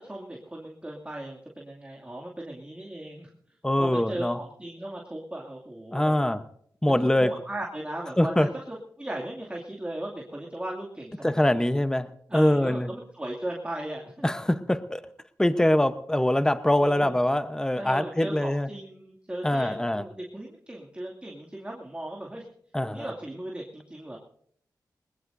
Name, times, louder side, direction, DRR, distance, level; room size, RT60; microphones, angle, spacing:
voice 1, 0.0-3.3 3.8-6.2 7.1-11.6 12.3-14.3 16.8-17.1 17.7-22.4 22.9-24.2, right 1 dB, 15° right, -2 dB, 2.5 m, -37 dB
voice 2, 3.6-4.4 5.9-6.4 6.8-7.4 8.2-8.5 11.2-12.1 12.3-12.9 14.2-15.0 15.4-18.7 19.4-20.0 22.7-23.1, left 1 dB, 10° left, 11 dB, 0.9 m, -23 dB
21.0 x 20.0 x 2.7 m, 0.66 s
cardioid pair, 60°, 7 cm